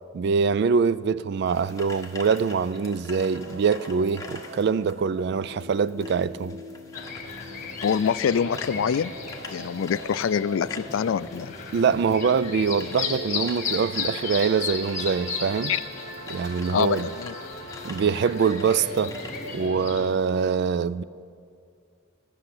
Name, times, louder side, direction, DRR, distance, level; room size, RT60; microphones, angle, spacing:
voice 1, 0.1-6.6 11.7-15.7 16.3-17.1 17.8-19.2 19.5-21.0, right 6 dB, 55° right, 0.3 m, -24 dB
sound 1, 1.5-19.7, left 3 dB, 15° left, 1.2 m, -46 dB
sound 2, 3.2-20.4, equal, 75° right, 2.2 m, -41 dB
sound 3, 6.9-20.1, left 5 dB, 40° left, 1.4 m, -35 dB
voice 2, 7.8-9.1 9.5-11.5 15.7-15.8 16.7-17.3, left 7 dB, 75° left, 0.3 m, -25 dB
14.5 x 6.5 x 9.7 m
head